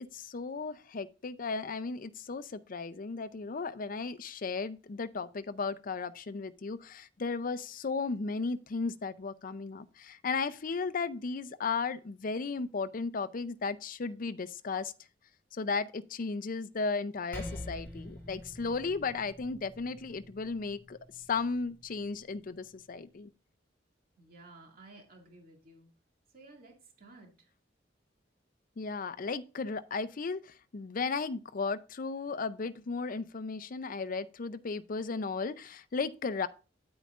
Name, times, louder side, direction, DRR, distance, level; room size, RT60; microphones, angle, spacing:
voice 1, 0.0-14.9 15.5-21.0 21.3-23.3 28.8-36.5, left 4 dB, 50° left, 0.5 m, -35 dB
Percussion, 17.3-22.1, left 1 dB, 10° left, 4.4 m, -46 dB
voice 2, 24.2-25.9 26.3-27.5, right 2 dB, 55° right, 2.3 m, -54 dB
9.6 x 8.9 x 2.5 m
head